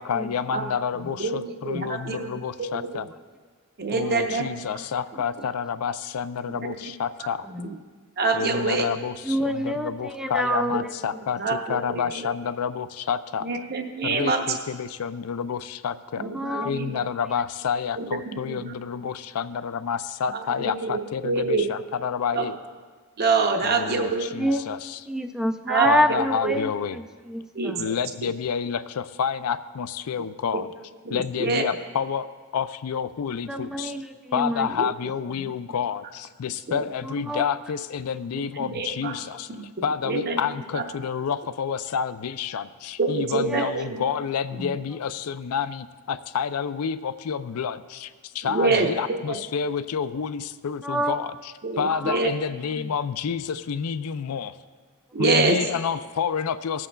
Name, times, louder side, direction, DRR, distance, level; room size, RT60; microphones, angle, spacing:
voice 1, 0.0-3.1 3.9-7.5 8.3-11.4 11.7-13.5 14.0-16.3 16.6-22.6 23.6-25.0 25.8-27.0 27.8-30.7 31.1-32.3 32.5-33.9 34.3-39.5 39.8-54.5 55.2-56.9, left 7 dB, 80° left, 13 dB, 0.4 m, -29 dB
voice 2, 1.2-2.5 2.7-2.9 3.8-4.6 6.5-6.9 8.2-8.9 10.5-10.6 11.4-12.2 13.4-14.4 16.2-17.0 18.0-18.8 20.3-21.6 22.3-22.5 23.2-24.4 25.7-26.5 27.5-27.7 28.2-28.3 31.1-31.6 34.8-34.9 36.7-36.9 38.6-39.1 39.5-39.6 40.0-40.4 40.7-40.8 43.0-44.0 48.4-48.9 49.3-49.4 51.6-52.3 55.1-55.6, right 4 dB, 45° right, 3 dB, 0.7 m, -26 dB
voice 3, 9.2-10.8 16.3-16.7 24.3-24.7 25.1-27.9 33.5-34.7 35.4-35.5 37.0-37.5 38.7-38.8 43.5-43.8 44.5-44.8 50.8-51.2 51.9-52.2 52.8-52.9, equal, 5° right, 7 dB, 0.4 m, -28 dB
20.0 x 7.8 x 2.3 m, 1.5 s
head